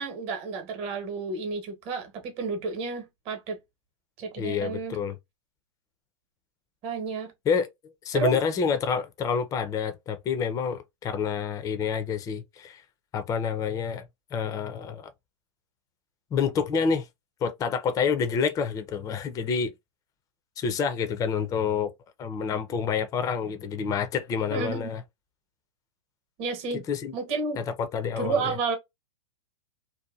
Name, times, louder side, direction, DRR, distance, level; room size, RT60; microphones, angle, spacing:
voice 1, 0.0-3.6 4.2-5.0 6.8-7.3 8.1-8.4 24.5-24.9 26.4-26.8 27.1-27.6 28.2-28.8, right 5 dB, 40° right, 1.0 m, -31 dB
voice 2, 4.4-5.2 7.5-7.7 8.0-12.8 13.1-15.1 16.3-17.1 17.4-19.7 20.6-21.9 22.2-25.0 26.7-27.1 27.6-28.5, left 6 dB, 20° left, 0.4 m, -28 dB
2.7 x 2.2 x 2.3 m
hypercardioid pair, 115°, 16 cm